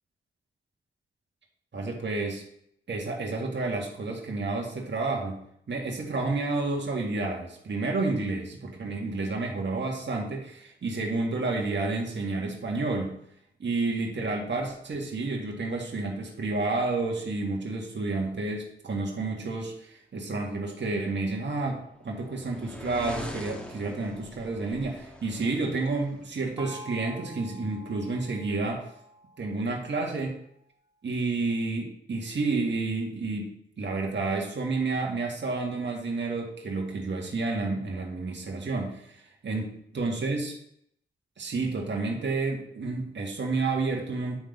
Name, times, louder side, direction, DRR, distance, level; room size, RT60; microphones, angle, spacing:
voice 1, 1.7-2.4 2.9-5.4 5.7-13.1 13.6-28.9 29.4-30.4 31.0-39.7 39.9-40.6 41.4-44.4, right 3 dB, 60° right, 0 dB, 1.8 m, -30 dB
sound 1, 21.4-26.3, equal, 5° left, 1.5 m, -43 dB
Gong, 26.6-30.1, right 1 dB, 20° right, 2.3 m, -47 dB
9.0 x 3.7 x 5.2 m, 0.70 s
cardioid pair, 50°, 21 cm